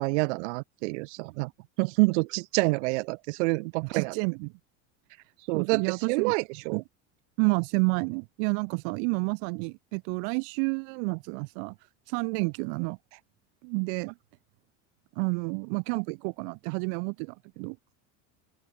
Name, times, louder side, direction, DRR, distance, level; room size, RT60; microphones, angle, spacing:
voice 1, 0.0-1.5 1.8-4.1 5.5-6.8, right 27 dB, 85° right, 1.2 m, -27 dB
voice 2, 3.8-4.5 5.5-6.3 6.7-6.8 7.4-11.7 12.1-13.0 13.6-14.1 15.2-17.8, right 40 dB or more, 65° right, 0.7 m, -30 dB
open air
cardioid pair, 165°, 34 cm